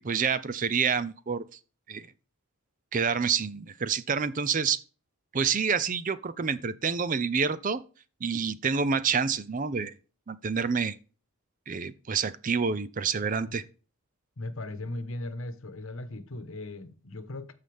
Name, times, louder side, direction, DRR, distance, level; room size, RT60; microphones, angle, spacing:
voice 1, 0.0-1.4 1.9-2.1 2.9-4.8 5.3-7.8 8.2-9.9 10.3-11.0 11.7-13.6, right 6 dB, 35° right, 0.5 m, -28 dB
voice 2, 13.2-13.5 14.4-17.5, left 2 dB, 65° left, 1.1 m, -38 dB
14.0 x 5.6 x 3.5 m
head